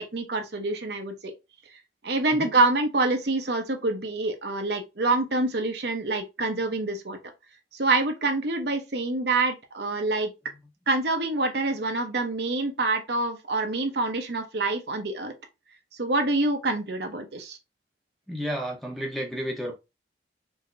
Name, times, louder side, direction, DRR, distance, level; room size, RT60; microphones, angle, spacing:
voice 1, 0.1-1.3 1.7-7.2 7.7-10.3 10.9-15.3 15.9-17.6, right 2 dB, 65° right, 0.8 m, -26 dB
voice 2, 18.3-19.8, equal, ahead, 0.9 m, -31 dB
4.7 x 2.8 x 2.6 m
head